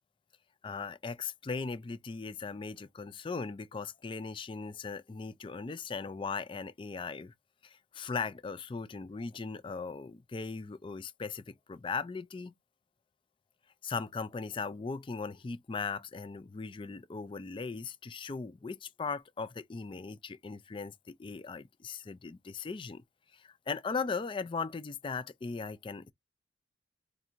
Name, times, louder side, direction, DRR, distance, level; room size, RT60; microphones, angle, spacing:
voice 1, 0.6-7.3 7.6-12.5 13.8-23.0 23.3-26.1, left 4 dB, 25° left, 0.3 m, -38 dB
3.5 x 2.5 x 4.3 m
head